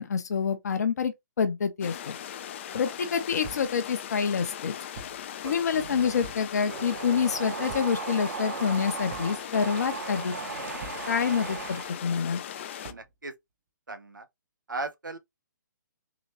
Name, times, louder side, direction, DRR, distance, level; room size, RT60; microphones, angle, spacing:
voice 1, 0.0-2.2 2.7-4.7 5.4-10.4 11.1-12.4, left 6 dB, 55° left, 0.8 m, -27 dB
sound 1, 1.8-12.9, left 10 dB, 40° left, 0.5 m, -39 dB
sound 2, 3.4-3.8 4.9-5.3 6.2-6.6 7.7-8.1 9.1-9.5 10.8-11.2 12.8-13.1, right 3 dB, 40° right, 0.9 m, -45 dB
sound 3, 5.7-12.1, right 6 dB, 60° right, 0.6 m, -37 dB
voice 2, 12.8-13.3 13.9-14.3 14.7-15.2, right 3 dB, 85° right, 0.9 m, -38 dB
3.9 x 3.0 x 2.9 m
figure-of-eight pair, 135°, 10 cm